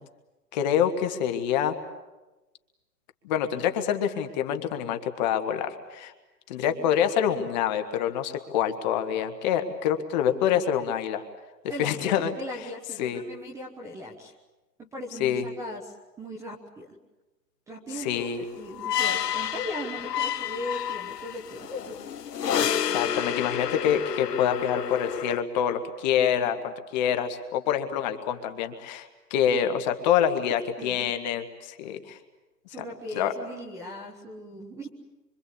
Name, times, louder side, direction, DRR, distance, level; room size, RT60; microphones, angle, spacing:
voice 1, 0.5-1.8 3.2-6.1 6.5-11.2 11.8-12.3 13.0-13.2 15.2-15.5 18.0-18.4 22.7-32.2 32.8-32.9 33.1-33.3, left 9 dB, 25° left, 7 dB, 1.6 m, -26 dB
voice 2, 11.7-14.3 14.8-16.9 17.7-18.3 18.6-22.0 30.8-31.1 32.7-34.9, left 1 dB, 5° right, 0 dB, 1.1 m, -38 dB
sound 1, 18.2-25.4, left 9 dB, 75° left, 1.2 m, -30 dB
25.5 x 25.0 x 8.5 m, 1.1 s
hypercardioid pair, 155°, 49 cm